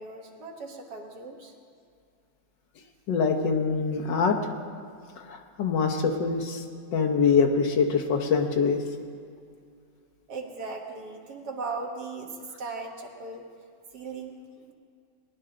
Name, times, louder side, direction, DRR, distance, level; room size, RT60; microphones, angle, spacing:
voice 1, 0.0-1.5 10.3-13.5 13.9-14.7, right 3 dB, 65° right, 1 dB, 1.9 m, -38 dB
voice 2, 3.1-4.4 5.3-6.6 6.9-8.8, left 5 dB, 80° left, 4 dB, 1.7 m, -24 dB
19.0 x 11.5 x 3.8 m, 2.4 s
omnidirectional pair, 1.9 m